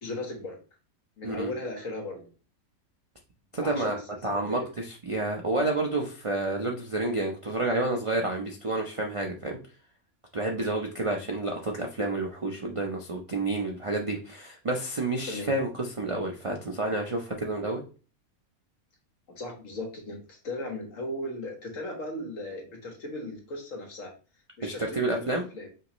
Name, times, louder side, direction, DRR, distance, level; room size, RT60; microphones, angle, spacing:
voice 1, 0.0-0.6 1.2-2.3 3.6-4.7 15.3-15.5 19.3-24.1 24.6-25.7, left 1 dB, 65° left, 1 dB, 1.6 m, -37 dB
voice 2, 3.5-9.6 10.3-17.8 24.6-25.4, right 2 dB, 50° right, 1 dB, 0.4 m, -29 dB
5.6 x 3.0 x 3.0 m, 0.35 s
omnidirectional pair, 1.5 m